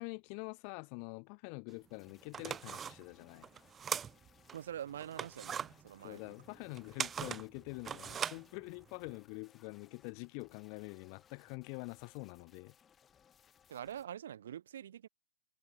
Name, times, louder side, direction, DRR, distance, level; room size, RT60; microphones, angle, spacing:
voice 1, 0.0-3.5 6.0-12.7, left 40 dB or more, 40° left, 0.9 m, -46 dB
sound 1, 1.7-1.8 2.2-4.6 5.0-9.1, right 8 dB, 15° right, 0.9 m, -41 dB
sound 2, 1.9-14.1, left 8 dB, 15° left, 2.9 m, -67 dB
voice 2, 4.5-6.2 13.7-15.1, right 10 dB, 65° right, 0.9 m, -45 dB
hypercardioid pair, 130°, 0 cm